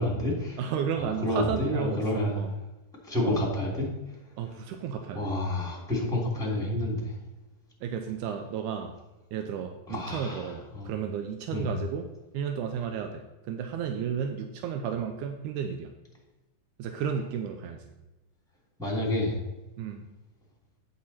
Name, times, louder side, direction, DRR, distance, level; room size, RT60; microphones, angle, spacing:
voice 1, 0.0-0.6 1.0-2.4 3.0-3.9 5.1-7.2 9.9-10.9 11.5-11.7 18.8-19.4, left 1 dB, ahead, -6 dB, 2.6 m, -29 dB
voice 2, 0.6-2.5 3.2-3.4 4.4-5.3 7.8-9.0 9.3-12.1 12.3-15.9 16.8-17.9 19.8-20.1, right 7 dB, 85° right, 5 dB, 2.1 m, -33 dB
9.0 x 7.0 x 4.3 m, 1.0 s
omnidirectional pair, 3.6 m